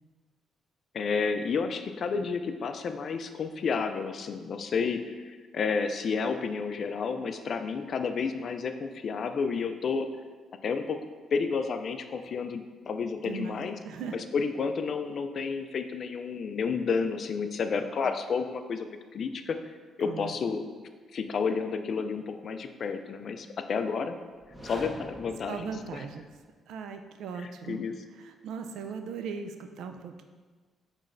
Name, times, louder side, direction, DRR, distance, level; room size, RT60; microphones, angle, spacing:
voice 1, 0.9-10.1 10.6-11.0 11.3-13.7 14.3-19.6 20.0-20.7 21.1-24.2 24.6-26.0 27.7-27.9, left 5 dB, 55° left, 8 dB, 0.3 m, -31 dB
voice 2, 13.2-14.2 20.0-20.3 25.5-26.3 26.7-27.8 28.1-30.2, right 6 dB, 80° right, 6 dB, 0.3 m, -38 dB
sound 1, 24.3-26.5, equal, 15° right, 0.9 m, -45 dB
5.8 x 3.1 x 2.5 m, 1.5 s
cardioid pair, 90°, 0 cm